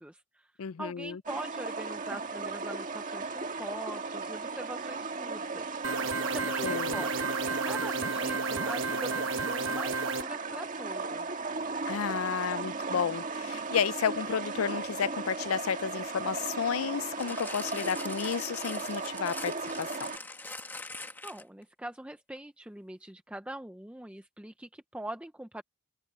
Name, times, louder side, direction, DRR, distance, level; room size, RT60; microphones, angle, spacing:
voice 1, 0.0-0.5 0.8-5.8 6.3-7.1 7.4-11.4 21.2-25.6, right 1 dB, 5° right, 0.5 m, -43 dB
voice 2, 0.6-1.2 6.6-7.0 11.9-20.1, left 7 dB, 85° left, 0.5 m, -32 dB
sound 1, 1.3-20.2, right 4 dB, 35° right, 1.7 m, -36 dB
sound 2, 5.8-10.2, right 4 dB, 65° right, 1.1 m, -32 dB
sound 3, 17.2-21.6 22.4-22.5, left 2 dB, 10° left, 1.6 m, -42 dB
head